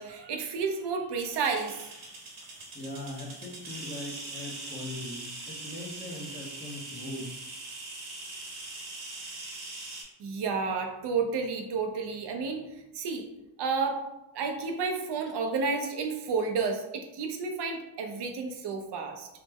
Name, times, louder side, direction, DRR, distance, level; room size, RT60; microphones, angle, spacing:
voice 1, 0.0-1.8 10.2-12.6 12.9-13.3 13.6-14.0 14.3-19.3, right 4 dB, 55° right, 3 dB, 0.5 m, -31 dB
sound 1, 1.3-10.0, right 2 dB, 75° right, 1.0 m, -42 dB
voice 2, 2.7-7.3, left 1 dB, 20° left, -1 dB, 0.7 m, -40 dB
3.1 x 2.0 x 3.4 m, 0.91 s
wide cardioid pair, 120°, 49 cm